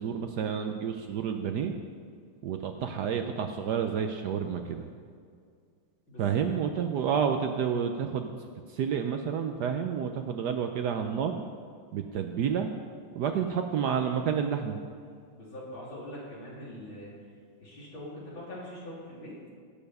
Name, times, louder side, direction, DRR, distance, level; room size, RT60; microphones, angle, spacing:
voice 1, 0.0-1.7 2.4-4.9 6.2-8.3 8.7-11.4 11.9-12.7 13.1-14.8, right 7 dB, 70° right, 6 dB, 1.0 m, -30 dB
voice 2, 6.1-6.9 15.3-17.1 17.6-19.4, left 1 dB, 70° left, -6 dB, 3.8 m, -43 dB
16.0 x 6.9 x 5.4 m, 2.2 s
omnidirectional pair, 2.2 m